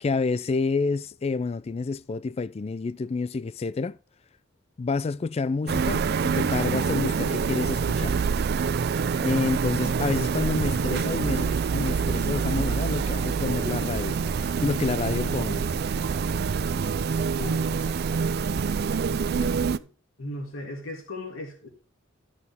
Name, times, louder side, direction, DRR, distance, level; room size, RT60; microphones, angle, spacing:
voice 1, 0.0-4.0 4.8-8.2 9.2-14.2 14.6-15.6, left 4 dB, 30° left, 0.3 m, -28 dB
sound 1, 5.7-19.8, right 5 dB, 55° right, 0.4 m, -26 dB
sound 2, 12.3-18.3, right 1 dB, 20° right, 1.5 m, -48 dB
voice 2, 17.3-17.8 19.0-19.9 20.2-21.7, left 2 dB, 90° left, 2.9 m, -37 dB
13.0 x 6.3 x 3.5 m
head